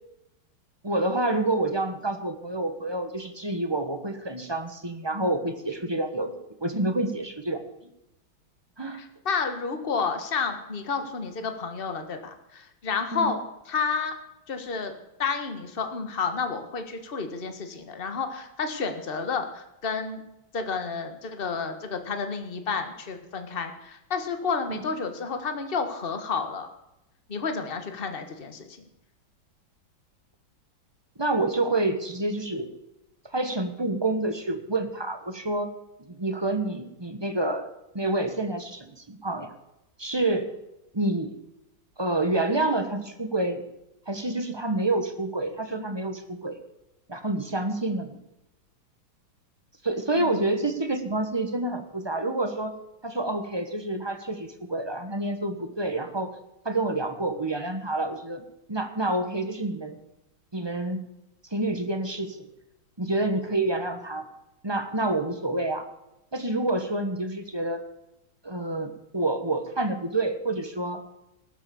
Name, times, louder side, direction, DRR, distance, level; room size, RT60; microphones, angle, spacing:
voice 1, 0.8-6.4 6.6-7.6 8.8-9.0 13.1-13.4 24.7-24.8 31.2-32.7 33.3-35.7 36.1-37.7 37.9-39.5 40.0-40.5 40.9-41.3 42.0-43.6 44.1-46.6 47.1-48.2 49.8-52.7 53.0-56.4 56.6-58.4 58.7-60.0 60.5-61.0 61.5-62.5 63.0-64.3 64.6-65.8 66.3-67.8 68.4-71.0, right 2 dB, 15° right, 7 dB, 1.1 m, -28 dB
voice 2, 8.9-14.1 14.5-14.9 15.2-20.2 20.5-26.7 27.3-28.8 50.1-50.5, left 5 dB, 30° left, 7 dB, 1.6 m, -30 dB
19.0 x 7.7 x 7.1 m, 0.89 s
omnidirectional pair, 2.2 m